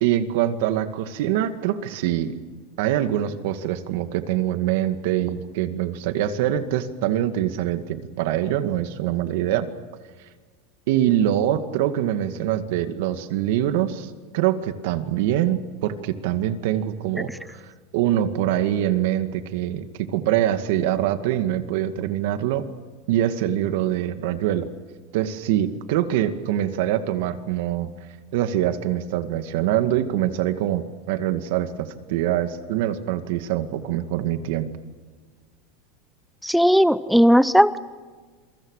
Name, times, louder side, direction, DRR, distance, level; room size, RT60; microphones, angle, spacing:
voice 1, 0.0-2.3 2.8-9.7 10.9-17.6 17.9-22.6 23.1-24.7 25.1-27.9 28.3-34.7, right 11 dB, 65° right, 8 dB, 2.2 m, -24 dB
voice 2, 36.4-37.8, equal, ahead, 15 dB, 0.8 m, -17 dB
28.0 x 23.5 x 6.7 m, 1.5 s
supercardioid pair, 150°, 0 cm